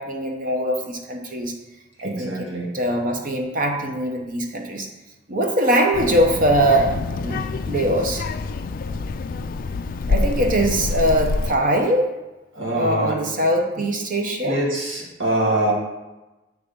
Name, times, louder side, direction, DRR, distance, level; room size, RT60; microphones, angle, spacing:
voice 1, 0.0-1.5 2.0-2.3 2.7-4.9 5.3-7.4 7.6-8.2 10.1-12.1 12.7-14.6, right 1 dB, 45° right, 3 dB, 0.8 m, -22 dB
voice 2, 2.0-2.7 12.5-13.5 14.4-15.7, right 1 dB, 85° right, -3 dB, 1.8 m, -24 dB
Child speech kid speaking, 5.9-11.5, left 3 dB, 45° left, 0.3 m, -26 dB
8.3 x 3.5 x 5.2 m, 1.1 s
head